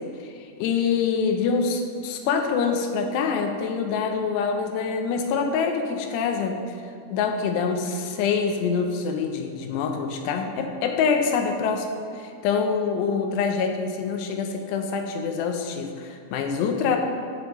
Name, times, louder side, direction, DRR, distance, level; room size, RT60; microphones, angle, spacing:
voice 1, 0.2-6.6 7.1-11.9 12.1-17.0, left 5 dB, 85° left, 4 dB, 2.8 m, -25 dB
15.0 x 5.3 x 3.1 m, 2.3 s
omnidirectional pair, 4.9 m